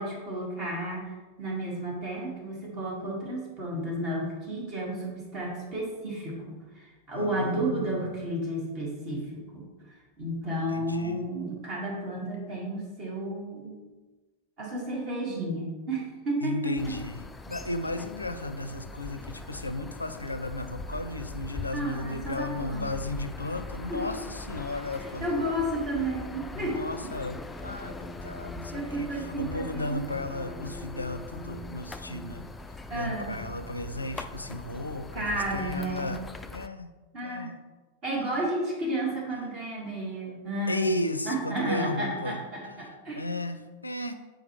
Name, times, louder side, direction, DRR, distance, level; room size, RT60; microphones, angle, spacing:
voice 1, 0.0-13.8 14.6-17.0 21.7-22.9 23.9-24.0 24.9-26.8 28.7-30.0 32.9-33.3 35.1-36.1 37.1-37.5 38.0-40.9 41.2-43.2, right 1 dB, 35° right, -3 dB, 1.8 m, -32 dB
voice 2, 7.1-8.1 10.7-11.3 16.4-25.4 26.5-32.5 32.9-36.2 36.5-36.9 37.2-37.5 38.1-38.5 40.2-40.4 40.7-42.4 43.2-44.1, left 2 dB, 80° left, 9 dB, 0.4 m, -35 dB
sound 1, 16.8-36.7, left 2 dB, 10° left, 0.3 m, -41 dB
7.8 x 4.8 x 3.0 m, 1.2 s
figure-of-eight pair, 90°, 0 cm